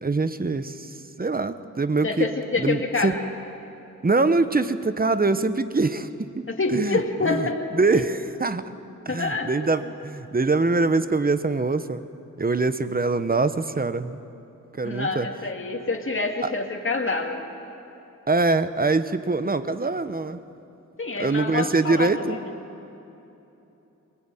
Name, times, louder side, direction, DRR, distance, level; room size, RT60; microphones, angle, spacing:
voice 1, 0.0-2.3 2.6-3.2 4.0-6.4 6.7-8.7 9.0-12.0 12.4-14.2 14.8-15.3 16.4-16.5 18.3-20.4 21.2-22.4, right 3 dB, 30° right, 12 dB, 1.0 m, -24 dB
voice 2, 2.0-3.2 6.5-7.6 7.9-8.0 9.1-9.5 14.8-17.4 21.0-22.5, left 3 dB, 40° left, 2 dB, 2.4 m, -27 dB
21.5 x 21.0 x 9.1 m, 3.0 s
wide cardioid pair, 85°, 31 cm